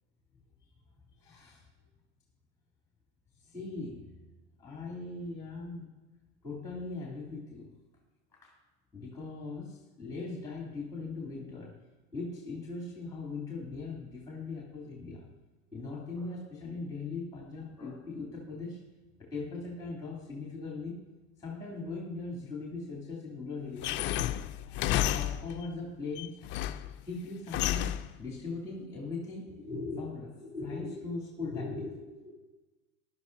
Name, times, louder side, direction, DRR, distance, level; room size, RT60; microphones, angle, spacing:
voice 1, 1.2-1.6 3.4-4.2 4.6-5.9 6.4-7.7 8.4-8.5 8.9-11.7 12.1-15.3 15.7-18.8 19.2-21.0 21.4-24.0 24.7-26.4 27.0-32.4, left 3 dB, 10° left, -4 dB, 3.0 m, -40 dB
sound 1, 23.8-25.7 26.2-27.0 27.5-28.2, left 13 dB, 30° left, 0.4 m, -31 dB
17.5 x 11.5 x 2.7 m, 1.2 s
hypercardioid pair, 100°, 43 cm